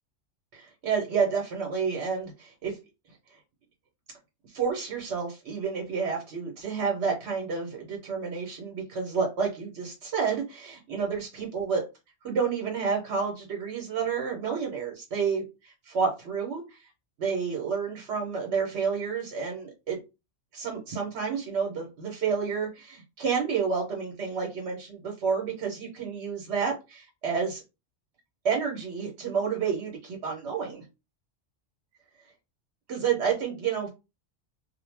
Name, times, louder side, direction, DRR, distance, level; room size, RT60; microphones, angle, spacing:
voice 1, 0.5-2.8 4.5-11.8 12.2-16.8 17.2-20.0 20.5-27.6 28.4-30.8 32.9-33.9, right 6 dB, 70° right, 0 dB, 1.0 m, -30 dB
2.2 x 2.1 x 3.2 m, 0.26 s
omnidirectional pair, 1.2 m